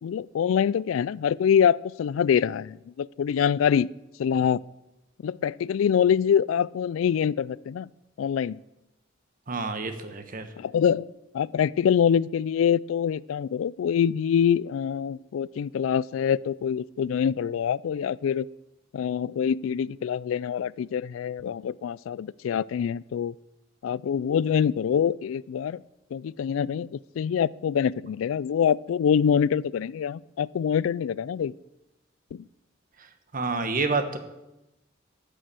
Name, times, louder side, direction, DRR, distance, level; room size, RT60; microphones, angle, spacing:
voice 1, 0.0-3.9 4.2-4.6 5.2-7.9 8.2-8.6 10.6-11.1 11.3-18.5 18.9-23.3 23.8-25.8 26.1-31.5 32.3-32.4, left 8 dB, 85° left, 22 dB, 0.3 m, -25 dB
voice 2, 9.5-10.4 33.3-34.2, right 3 dB, 45° right, 8 dB, 1.1 m, -28 dB
10.5 x 6.9 x 7.6 m, 0.95 s
head